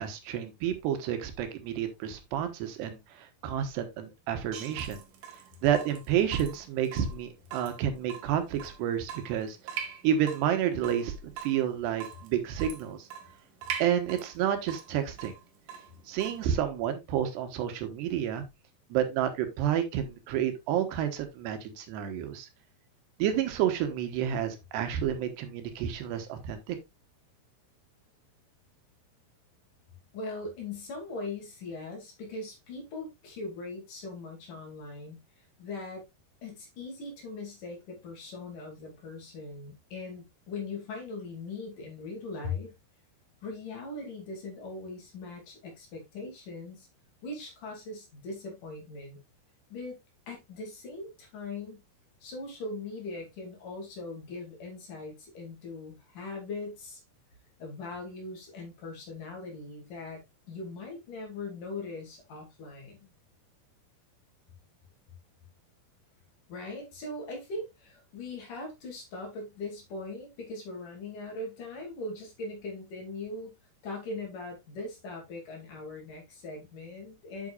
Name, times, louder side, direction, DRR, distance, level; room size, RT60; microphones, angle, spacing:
voice 1, 0.0-3.0 3.4-5.0 5.6-9.6 10.0-11.1 11.4-13.0 13.8-15.3 16.1-18.4 18.9-22.5 23.2-26.8, right 9 dB, 80° right, 3.3 m, -30 dB
Water tap faucet / Drip, 4.5-16.5, right 8 dB, 65° right, 2.6 m, -43 dB
voice 2, 30.1-35.2 35.6-36.0 36.4-42.7 43.4-46.9 47.2-49.2 49.7-50.0 50.3-51.8 52.2-57.0 57.6-60.2 60.5-63.1 66.5-73.5 73.8-77.5, left 3 dB, 55° left, 3.9 m, -40 dB
8.4 x 8.0 x 2.5 m
omnidirectional pair, 4.8 m